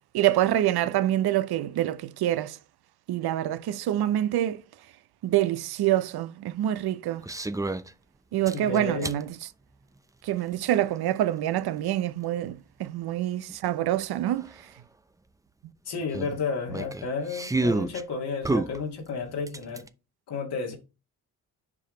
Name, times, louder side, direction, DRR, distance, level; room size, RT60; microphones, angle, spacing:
voice 1, 0.1-2.6 3.1-4.6 5.2-7.3 8.3-9.3 10.2-14.5, right 12 dB, 60° right, 0.8 m, -26 dB
sound 1, 7.2-7.9 8.5-9.2 10.7-10.8 13.5-13.6 13.8-13.9 14.4-14.5 16.1-18.0 18.4-19.9, right 2 dB, 10° right, 0.6 m, -29 dB
voice 2, 8.5-9.2 15.9-19.9 20.3-20.7, left 4 dB, 70° left, 2.0 m, -32 dB
7.2 x 4.9 x 3.1 m
supercardioid pair, 55°, 42 cm